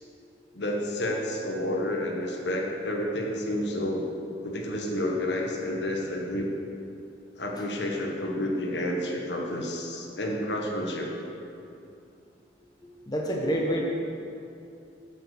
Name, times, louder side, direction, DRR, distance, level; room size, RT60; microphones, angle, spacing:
voice 1, 0.5-4.1 4.4-6.5 7.4-11.1, left 1 dB, 75° left, 0 dB, 1.4 m, -30 dB
voice 2, 12.8-13.8, equal, 20° left, -1 dB, 1.0 m, -28 dB
8.1 x 7.7 x 6.6 m, 2.7 s
head